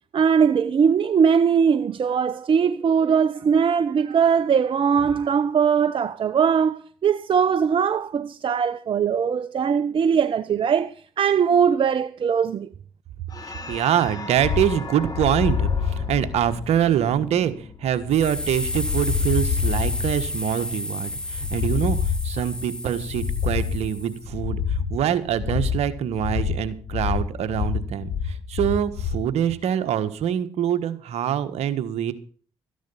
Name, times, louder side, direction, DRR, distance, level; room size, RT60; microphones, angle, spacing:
voice 1, 0.1-12.7, right 7 dB, 50° right, 0.7 m, -20 dB
sound 1, 13.3-18.1, left 2 dB, 35° left, 2.9 m, -39 dB
voice 2, 13.7-17.5 17.8-32.1, right 9 dB, 70° right, 1.3 m, -24 dB
sound 2, 14.4-29.3, left 7 dB, 80° left, 1.6 m, -27 dB
sound 3, 18.1-24.3, left 1 dB, 10° left, 2.1 m, -32 dB
13.5 x 10.5 x 5.6 m
supercardioid pair, 55°, 11 cm